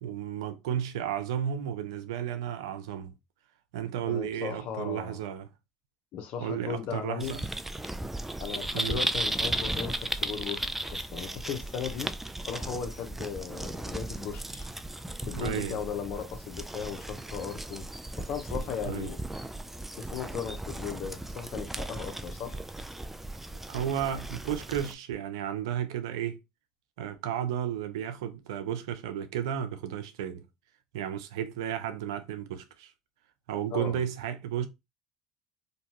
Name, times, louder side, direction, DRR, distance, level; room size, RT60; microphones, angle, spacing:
voice 1, 0.0-3.1 3.7-5.5 6.4-7.4 8.7-9.0 15.3-15.8 18.8-19.1 23.7-26.4 27.0-30.4 30.9-32.9 33.5-34.7, right 9 dB, 80° right, 0.4 m, -33 dB
voice 2, 4.0-5.2 6.1-7.5 8.4-12.1 12.4-14.7 15.2-17.9 18.2-19.2 19.9-22.6 33.7-34.0, left 7 dB, 65° left, 0.6 m, -37 dB
sound 1, 7.2-24.9, right 1 dB, 10° right, 0.3 m, -36 dB
2.6 x 2.3 x 2.8 m
hypercardioid pair, 70°, 3 cm